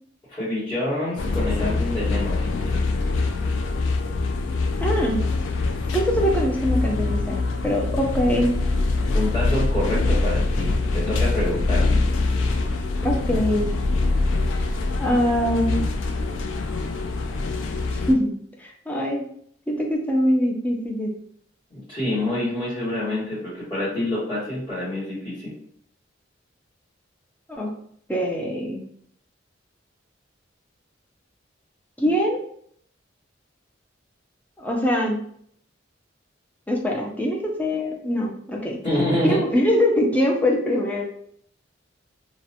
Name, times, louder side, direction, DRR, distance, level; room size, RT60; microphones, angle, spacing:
voice 1, 0.3-2.5 9.1-12.0 21.7-25.5 38.8-39.4, left 1 dB, 30° left, -14 dB, 1.2 m, -27 dB
sound 1, 1.2-18.1, left 3 dB, 75° left, 0.3 m, -24 dB
voice 2, 4.8-5.2 5.9-8.6 13.0-13.7 15.0-15.8 18.1-18.3 18.6-19.2 19.7-21.1 27.5-27.7 28.1-28.8 32.0-32.4 34.6-35.2 36.7-38.8 39.3-41.1, equal, 10° left, -1 dB, 0.4 m, -23 dB
2.4 x 2.1 x 2.7 m, 0.64 s
head